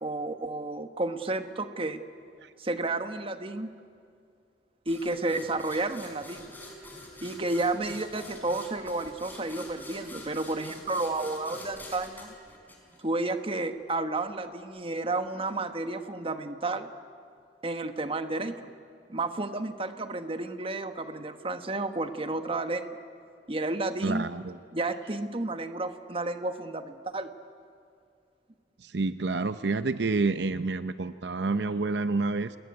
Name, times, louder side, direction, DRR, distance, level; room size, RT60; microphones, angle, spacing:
voice 1, 0.0-2.0 2.6-3.7 4.9-6.5 7.2-12.3 13.0-16.9 17.6-18.7 19.1-23.0 23.5-24.3 24.7-27.3, right 2 dB, 30° right, 8 dB, 1.4 m, -31 dB
sound 1, 4.9-13.4, left 1 dB, 10° left, 5.1 m, -46 dB
voice 2, 24.0-24.6 28.8-32.6, right 3 dB, 70° right, 11 dB, 0.7 m, -28 dB
29.0 x 20.5 x 9.5 m, 2.3 s
head